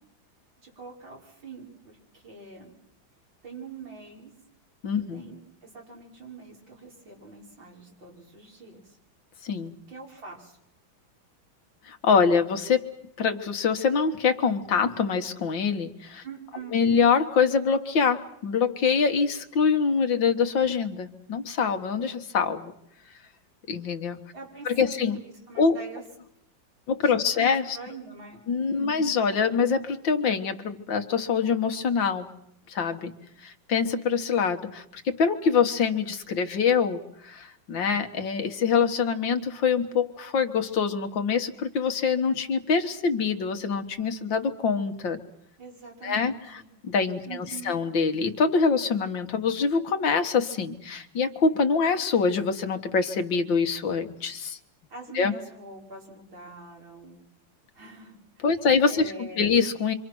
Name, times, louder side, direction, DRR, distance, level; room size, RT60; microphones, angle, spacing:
voice 1, 0.6-2.7 3.4-4.3 4.9-9.0 9.9-10.6 16.2-16.8 24.3-26.0 27.0-29.0 45.6-46.7 47.3-47.8 54.9-57.2 57.7-58.5 58.9-59.5, right 4 dB, 85° right, -1 dB, 6.4 m, -44 dB
voice 2, 4.8-5.2 9.4-9.8 11.8-16.2 16.7-22.7 23.7-24.2 24.7-25.2 25.6-25.8 26.9-27.8 28.5-32.3 32.7-33.1 33.4-45.2 46.0-54.6 55.1-55.3 58.4-59.9, left 5 dB, 75° left, 7 dB, 2.3 m, -25 dB
27.5 x 25.5 x 6.2 m, 0.75 s
omnidirectional pair, 2.0 m